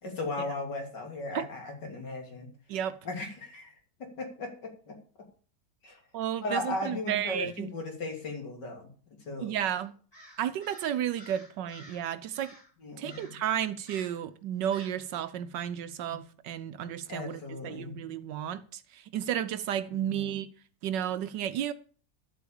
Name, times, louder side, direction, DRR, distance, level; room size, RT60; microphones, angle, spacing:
voice 1, 0.0-2.5 3.1-5.0 5.8-6.0 6.4-9.5 12.8-13.4 16.1-16.2 17.1-18.0 19.9-20.3, left 2 dB, 70° left, 3.5 m, -37 dB
voice 2, 6.1-7.7 9.4-9.9 10.4-12.6 13.0-20.5 20.8-21.7, right 10 dB, 80° right, 1.3 m, -32 dB
Crow, 10.1-12.1 12.3-12.7 13.1-13.4 13.9-14.2 14.7-15.0, left 1 dB, 15° left, 3.3 m, -52 dB
11.5 x 8.3 x 7.0 m
omnidirectional pair, 1.9 m